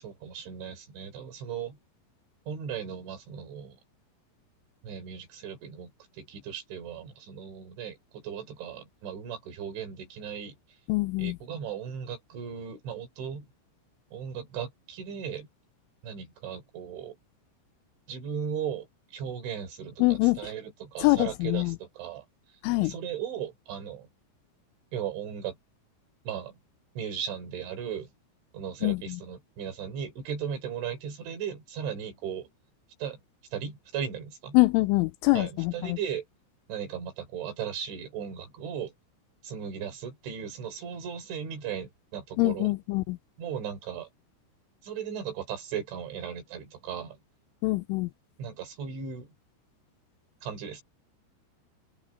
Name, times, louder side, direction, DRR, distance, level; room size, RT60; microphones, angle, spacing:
voice 1, 0.0-1.8 2.5-3.8 4.8-10.6 11.2-13.5 14.1-15.5 16.0-17.2 18.1-22.3 22.8-24.1 24.9-25.6 26.3-26.6 27.0-28.1 28.5-32.5 33.0-33.2 33.5-34.6 35.3-36.3 36.7-38.9 39.4-42.7 43.4-44.1 44.8-47.2 48.4-49.3 50.4-50.8, right 8 dB, 65° right, 6.0 m, -37 dB
voice 2, 10.9-11.4 20.0-20.5 21.0-21.8 22.6-22.9 28.8-29.2 34.5-36.0 42.4-43.2 47.6-48.1, left 23 dB, 85° left, 3.0 m, -24 dB
open air
omnidirectional pair, 5.8 m